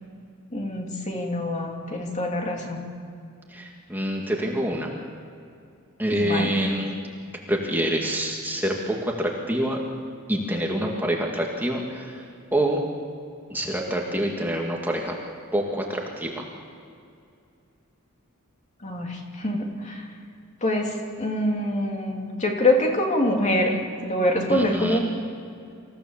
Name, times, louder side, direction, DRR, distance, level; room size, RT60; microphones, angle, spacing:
voice 1, 0.5-2.8 6.1-6.5 18.8-20.1 20.6-25.0, left 1 dB, 35° left, 0 dB, 2.9 m, -25 dB
voice 2, 3.5-4.9 6.0-6.9 7.5-9.8 10.3-12.3 12.5-12.8 13.5-15.2 15.5-16.4 24.5-25.0, right 1 dB, 10° right, -1 dB, 2.0 m, -26 dB
26.5 x 15.5 x 7.2 m, 2.4 s
head